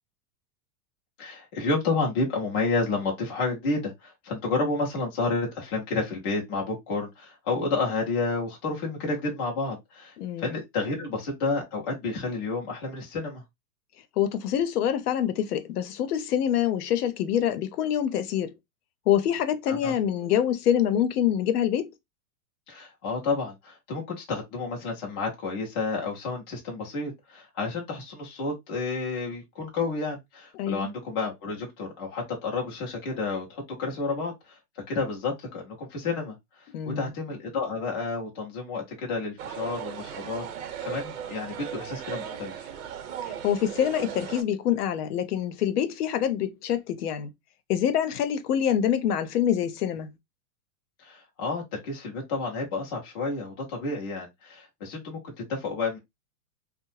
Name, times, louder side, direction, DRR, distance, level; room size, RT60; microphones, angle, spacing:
voice 1, 1.2-13.4 19.7-19.9 22.7-34.6 34.9-40.4 40.8-42.7 51.0-56.0, left 3 dB, 20° left, 0.3 m, -30 dB
voice 2, 10.2-10.5 14.2-18.5 19.1-21.9 30.6-30.9 36.7-37.1 43.4-47.3 47.7-50.1, left 10 dB, 80° left, 0.7 m, -25 dB
sound 1, 39.4-44.4, right 8 dB, 65° right, 0.8 m, -37 dB
2.7 x 2.1 x 3.0 m
supercardioid pair, 155°, 45 cm